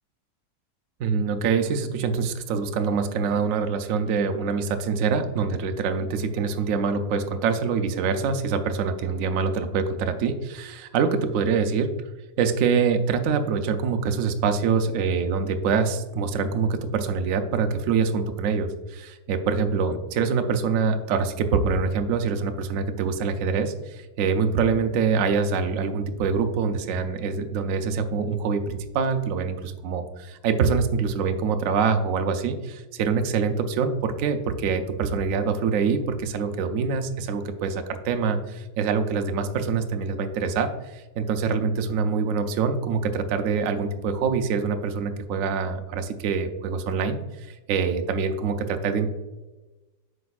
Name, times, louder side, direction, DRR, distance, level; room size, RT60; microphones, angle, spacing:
voice 1, 1.0-11.9 12.4-49.1, right 5 dB, 75° right, 7 dB, 0.7 m, -25 dB
8.0 x 5.1 x 2.4 m, 1.1 s
omnidirectional pair, 2.0 m